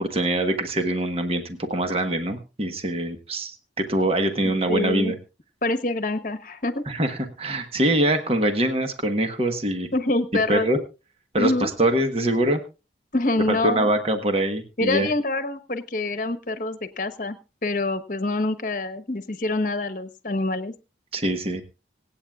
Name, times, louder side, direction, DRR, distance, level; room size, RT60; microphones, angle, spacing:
voice 1, 0.0-5.1 6.9-9.9 10.5-10.8 11.3-12.6 13.5-15.1 21.1-21.6, right 1 dB, 35° right, 6 dB, 1.3 m, -24 dB
voice 2, 4.7-5.1 5.6-6.8 9.9-10.7 11.4-11.7 13.1-13.9 14.8-17.4 17.6-20.7, left 2 dB, 45° left, 12 dB, 1.1 m, -25 dB
25.5 x 8.9 x 2.4 m, 0.30 s
head